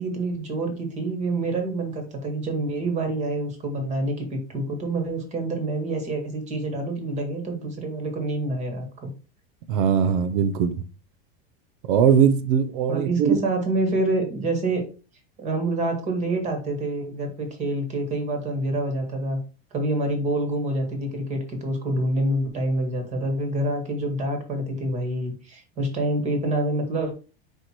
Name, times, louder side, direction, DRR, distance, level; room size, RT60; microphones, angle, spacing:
voice 1, 0.0-9.1 12.9-14.8 15.4-19.4 19.7-27.1, right 2 dB, 25° right, 1.7 m, -27 dB
voice 2, 9.7-10.8 11.9-13.4, right 7 dB, 60° right, 0.8 m, -20 dB
4.9 x 4.5 x 4.5 m
supercardioid pair, 170°, 29 cm